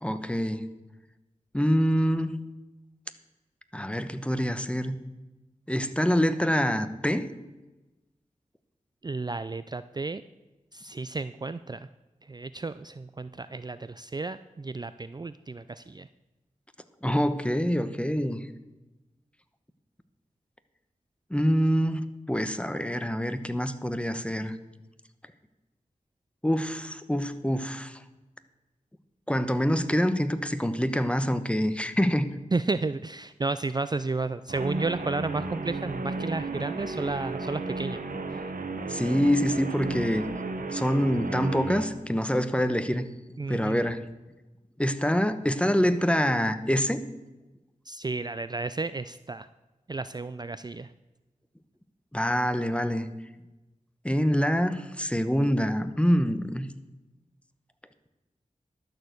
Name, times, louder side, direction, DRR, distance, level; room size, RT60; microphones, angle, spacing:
voice 1, 0.0-0.6 1.5-2.3 3.7-5.0 5.7-7.3 17.0-18.4 21.3-24.6 26.4-28.0 29.3-32.3 38.9-40.3 40.7-43.1 43.5-44.0 44.8-47.0 52.1-53.1 54.0-56.7, equal, 10° left, 11 dB, 1.0 m, -25 dB
voice 2, 9.0-10.2 10.7-11.9 12.2-16.1 32.5-38.0 38.3-38.5 43.4-43.8 47.9-49.5 49.9-50.9, right 3 dB, 30° right, 13 dB, 0.4 m, -32 dB
Guitar, 34.5-41.9, right 3 dB, 90° right, 1.1 m, -34 dB
12.0 x 6.6 x 7.9 m, 1.1 s
cardioid pair, 45°, 14 cm